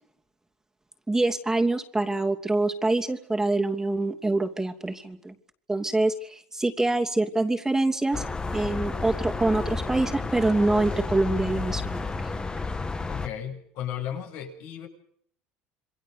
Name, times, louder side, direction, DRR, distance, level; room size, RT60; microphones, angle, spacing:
voice 1, 1.1-5.3 5.7-8.2 8.5-12.5, right 2 dB, 10° right, 3 dB, 2.8 m, -25 dB
sound 1, 8.1-13.3, left 4 dB, 20° left, 1.9 m, -31 dB
voice 2, 13.1-14.9, left 10 dB, 70° left, 3 dB, 7.8 m, -35 dB
28.0 x 23.0 x 7.0 m, 0.64 s
supercardioid pair, 100°, 5 cm